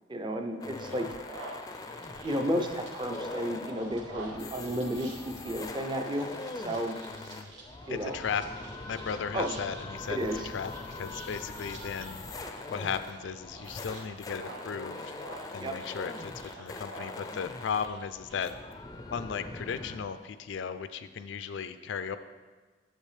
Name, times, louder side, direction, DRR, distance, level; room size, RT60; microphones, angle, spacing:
voice 1, 0.1-1.1 2.2-6.3 6.5-7.0 7.9-8.2 9.3-9.5 10.1-10.5 15.6-15.8, equal, 25° right, 4 dB, 0.6 m, -32 dB
sound 1, 0.6-20.0, left 2 dB, 20° left, 0.4 m, -42 dB
sound 2, 0.8-18.4, right 2 dB, 80° right, 1.2 m, -49 dB
voice 2, 7.2-7.5 7.9-8.4 8.8-12.2 12.7-15.1 15.5-18.5 19.1-22.2, left 6 dB, 85° left, 11 dB, 0.4 m, -36 dB
8.5 x 6.9 x 3.3 m, 1.4 s
head